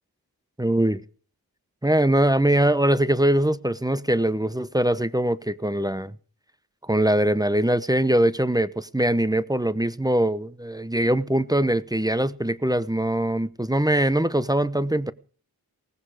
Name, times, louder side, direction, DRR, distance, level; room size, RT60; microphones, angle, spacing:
voice 1, 0.6-1.0 1.8-6.1 6.8-15.1, right 1 dB, 10° right, 0.9 m, -22 dB
18.5 x 15.0 x 4.9 m
cardioid pair, 55°, 39 cm